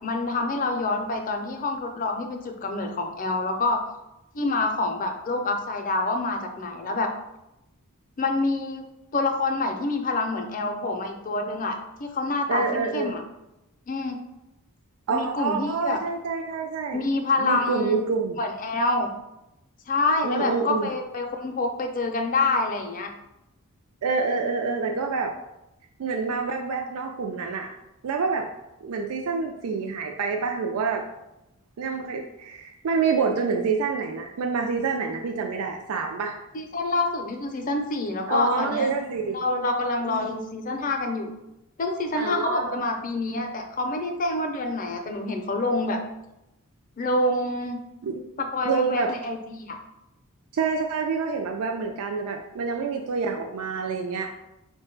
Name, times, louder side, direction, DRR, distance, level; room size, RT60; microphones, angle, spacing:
voice 1, 0.0-3.8 4.3-7.1 8.2-8.8 9.1-13.2 13.9-14.2 15.1-16.0 16.9-17.9 18.4-19.1 19.9-23.1 36.5-38.9 39.3-41.3 41.8-46.0 47.0-47.8 48.4-49.8, left 2 dB, 40° left, 4 dB, 0.5 m, -27 dB
voice 2, 12.5-13.1 15.1-17.0 17.4-18.4 20.2-20.9 24.0-25.3 26.0-27.7 28.0-28.5 28.8-31.0 31.8-36.3 38.3-39.4 40.0-40.3 42.2-42.8 48.0-48.2 48.6-49.1 50.5-54.3, right 5 dB, 80° right, 2 dB, 0.4 m, -27 dB
4.8 x 2.2 x 4.4 m, 0.91 s
head